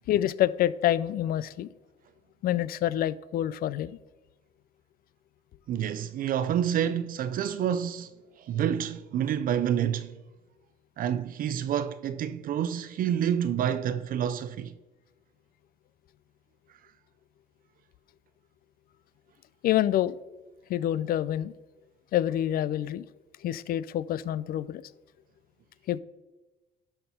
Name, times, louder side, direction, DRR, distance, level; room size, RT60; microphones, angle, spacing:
voice 1, 0.1-1.7 2.4-4.0 19.6-20.2 20.7-21.5 22.1-23.1 23.4-24.8 25.9-26.0, left 12 dB, 60° left, 0.5 m, -27 dB
voice 2, 5.7-8.1 8.4-10.2 11.0-14.7, right 9 dB, 55° right, 0.5 m, -28 dB
12.0 x 4.5 x 5.6 m
cardioid pair, 110°, 17 cm